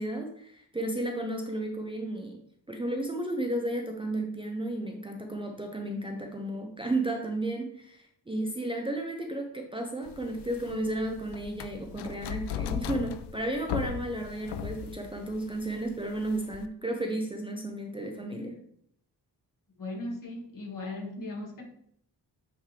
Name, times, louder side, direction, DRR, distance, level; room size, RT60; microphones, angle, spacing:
voice 1, 0.0-2.4 2.7-18.6, right 1 dB, 15° right, 1 dB, 0.6 m, -33 dB
sound 1, 10.1-16.7, left 9 dB, 85° left, 0.5 m, -38 dB
voice 2, 19.8-21.6, left 2 dB, 55° left, -1 dB, 1.8 m, -37 dB
8.7 x 3.6 x 3.2 m, 0.68 s
wide cardioid pair, 145°, 40 cm